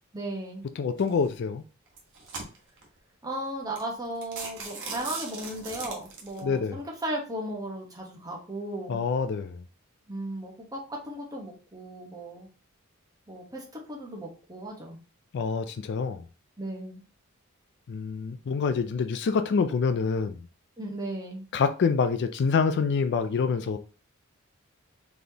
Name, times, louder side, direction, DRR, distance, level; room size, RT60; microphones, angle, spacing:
voice 1, 0.1-0.6 3.2-9.0 10.1-12.5 13.3-15.0 16.6-17.0 20.8-21.4, right 1 dB, 20° right, 1.2 m, -36 dB
voice 2, 0.8-1.6 6.4-6.8 8.9-9.6 15.3-16.2 17.9-20.4 21.5-23.8, left 5 dB, 55° left, 0.3 m, -26 dB
sound 1, 1.0-1.3 1.9-2.8 3.4-3.5 3.8-3.9 4.2-6.4, right 4 dB, 60° right, 1.2 m, -38 dB
4.1 x 3.4 x 2.8 m
head